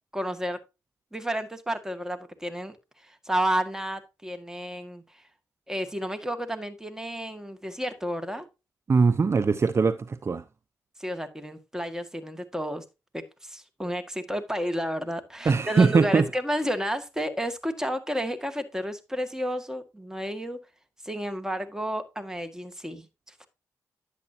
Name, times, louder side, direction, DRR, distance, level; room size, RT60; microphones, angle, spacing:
voice 1, 0.1-0.6 1.1-2.8 3.0-5.0 5.7-8.5 11.0-12.8 13.1-20.6 21.0-23.1 23.4-23.5, equal, 10° right, 1.9 m, -31 dB
voice 2, 8.9-10.4 15.5-16.2, right 4 dB, 40° right, 0.7 m, -21 dB
10.5 x 8.1 x 2.8 m
cardioid pair, 55°, 7 cm